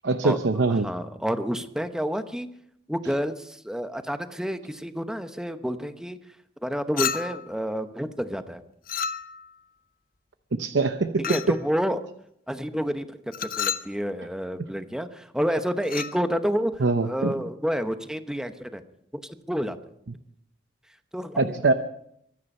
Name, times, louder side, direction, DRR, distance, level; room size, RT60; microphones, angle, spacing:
voice 1, 0.0-0.9 10.5-11.6 16.8-17.3 21.4-21.7, right 3 dB, 70° right, 9 dB, 0.8 m, -23 dB
voice 2, 0.7-2.5 2.9-6.2 6.6-8.6 11.2-12.0 12.5-13.2 13.6-18.8 19.1-19.8 21.1-21.6, equal, 5° right, 9 dB, 0.9 m, -29 dB
Chink clink, 7.0-7.5 8.9-9.5 11.2-11.6 13.3-13.9 15.8-16.2, left 7 dB, 50° left, 0.7 m, -30 dB
23.5 x 9.7 x 5.5 m, 0.74 s
head